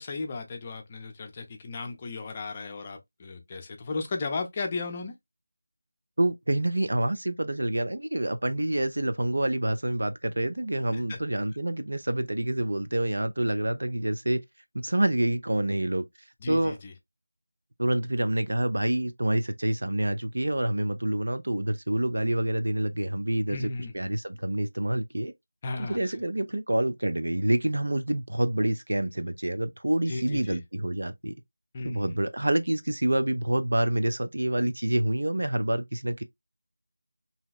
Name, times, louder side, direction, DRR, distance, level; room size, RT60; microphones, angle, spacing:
voice 1, 0.0-5.1 10.9-11.2 16.4-16.9 23.5-23.9 25.6-26.1 30.1-30.6 31.7-32.2, left 3 dB, 25° left, 0.5 m, -35 dB
voice 2, 6.2-14.4 14.7-16.0 16.5-16.8 17.8-23.6 23.9-25.3 25.8-31.4 31.8-36.2, right 1 dB, 70° right, 0.5 m, -27 dB
3.0 x 2.8 x 2.2 m
figure-of-eight pair, 170°, 0 cm